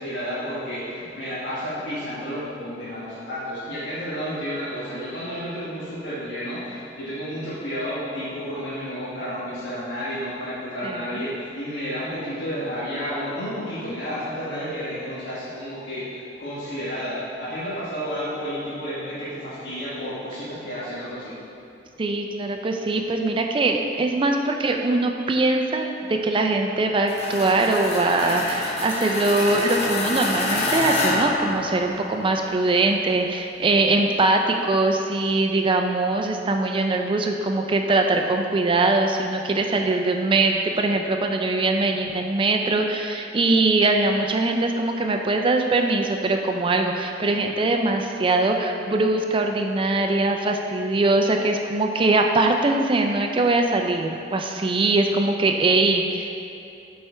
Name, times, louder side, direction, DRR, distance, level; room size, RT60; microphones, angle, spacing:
voice 1, 0.0-21.4, equal, 65° left, -10 dB, 1.4 m, -31 dB
voice 2, 10.8-11.2 22.0-56.3, right 2 dB, 30° right, 3 dB, 0.4 m, -22 dB
sound 1, 27.1-32.3, left 2 dB, 35° left, 0.7 m, -27 dB
8.1 x 4.3 x 3.4 m, 2.6 s
head